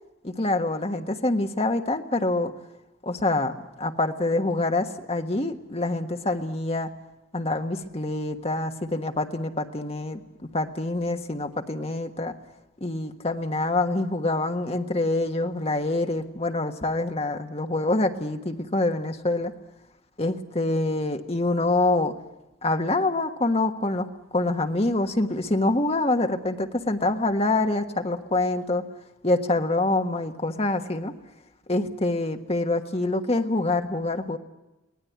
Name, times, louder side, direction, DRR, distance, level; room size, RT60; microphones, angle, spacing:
voice 1, 0.2-2.5 3.0-6.9 7.3-12.3 12.8-19.5 20.2-22.1 22.6-24.1 24.3-28.9 29.2-31.1 31.7-34.4, left 2 dB, 30° left, 5 dB, 1.4 m, -26 dB
23.5 x 18.0 x 9.4 m, 1.0 s
head